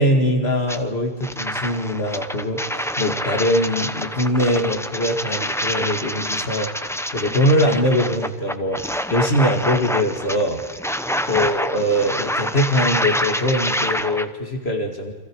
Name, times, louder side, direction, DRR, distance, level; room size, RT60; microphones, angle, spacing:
voice 1, 0.0-10.6 11.3-15.1, equal, 70° left, 3 dB, 2.4 m, -22 dB
sound 1, 0.7-0.8 1.2-14.3, equal, 5° left, 0.8 m, -27 dB
29.5 x 25.5 x 4.8 m, 1.4 s
omnidirectional pair, 1.1 m